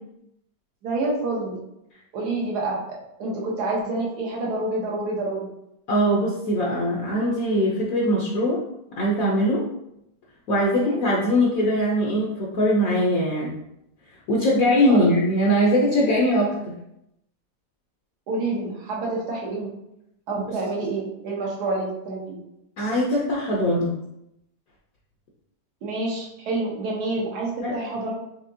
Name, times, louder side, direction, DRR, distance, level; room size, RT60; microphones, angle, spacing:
voice 1, 0.8-1.6 2.1-2.8 3.2-5.5 10.7-11.0 14.9-15.1 18.3-19.7 20.3-22.4 25.8-28.1, right 2 dB, 65° right, -3 dB, 1.5 m, -28 dB
voice 2, 5.9-8.6 9.0-9.6 10.5-13.6 14.3-16.7 20.5-20.6 22.8-23.9 27.6-27.8, equal, 65° left, -3 dB, 1.0 m, -21 dB
5.0 x 2.8 x 2.7 m, 0.83 s
omnidirectional pair, 1.9 m